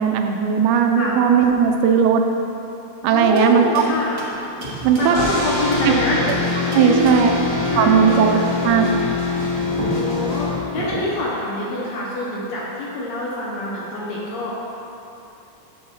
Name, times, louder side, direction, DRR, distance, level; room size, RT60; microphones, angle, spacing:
voice 1, 0.0-2.2 3.0-3.8 4.8-5.2 5.9-6.0 6.7-7.3 7.8-8.9, right 7 dB, 85° right, 4 dB, 2.0 m, -17 dB
voice 2, 3.1-4.2 5.0-6.2 6.7-8.5 9.9-14.5, left 2 dB, 70° left, -5 dB, 1.9 m, -25 dB
sound 1, 3.3-5.9 6.3-7.4 9.4-9.5 9.7-11.4, right 2 dB, 65° right, 1.0 m, -33 dB
sound 2, 4.6-10.5, right 1 dB, 50° left, 2.3 m, -35 dB
sound 3, 5.1-11.0, left 3 dB, 20° left, 1.2 m, -24 dB
6.8 x 4.7 x 5.7 m, 2.9 s
omnidirectional pair, 3.5 m